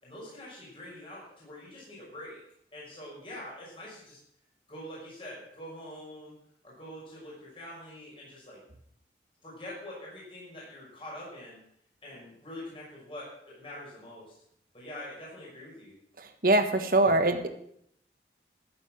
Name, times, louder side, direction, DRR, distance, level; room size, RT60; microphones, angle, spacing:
voice 1, 0.0-2.4 2.7-4.2 4.7-6.3 6.6-8.6 9.4-11.6 12.0-14.4 14.7-16.0, left 1 dB, 30° left, -5 dB, 6.0 m, -44 dB
voice 2, 16.4-17.5, right 2 dB, 50° right, 7 dB, 1.5 m, -22 dB
14.5 x 8.1 x 7.7 m, 0.71 s
head